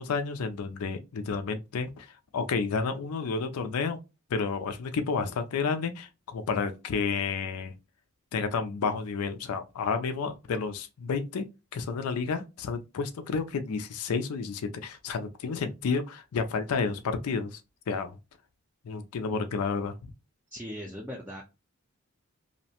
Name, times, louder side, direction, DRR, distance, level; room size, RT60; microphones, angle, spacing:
voice 1, 0.0-2.1 2.3-4.0 4.3-7.7 8.3-11.4 11.7-17.6 17.9-18.2 18.8-19.9, left 5 dB, 85° left, 0.4 m, -31 dB
voice 2, 20.5-21.4, equal, 10° right, 0.3 m, -39 dB
2.7 x 2.1 x 2.7 m
head